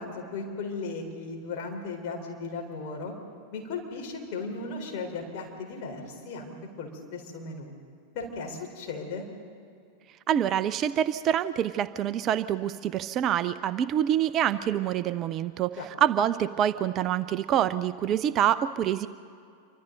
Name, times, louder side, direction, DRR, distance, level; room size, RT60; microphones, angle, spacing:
voice 1, 0.0-3.1 3.5-7.7 8.1-9.3 15.8-15.9, left 4 dB, 45° left, 1 dB, 4.3 m, -36 dB
voice 2, 10.3-19.1, right 10 dB, 35° right, 15 dB, 0.5 m, -26 dB
28.5 x 24.5 x 4.0 m, 2.3 s
figure-of-eight pair, 90°, 0 cm